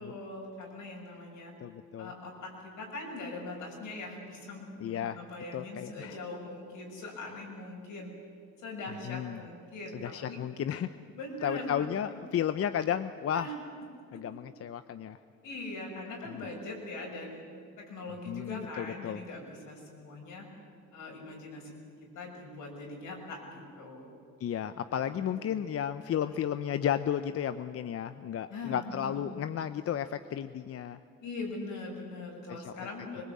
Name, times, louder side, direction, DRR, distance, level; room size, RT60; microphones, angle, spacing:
voice 1, 0.0-1.5 2.0-8.1 8.6-10.4 11.1-12.2 13.3-13.5 14.1-14.2 15.4-17.5 17.8-20.5 20.9-24.1 25.0-25.6 26.2-26.4 28.5-29.3 31.2-33.2, left 2 dB, 75° left, -1 dB, 7.0 m, -42 dB
voice 2, 1.6-2.1 4.8-5.2 5.5-6.2 9.1-9.4 10.0-11.0 11.4-13.5 14.1-15.2 16.3-16.5 18.3-19.2 24.4-31.0 32.6-32.9, left 9 dB, 50° left, 11 dB, 0.7 m, -33 dB
22.5 x 20.5 x 8.6 m, 2.3 s
supercardioid pair, 80°, 31 cm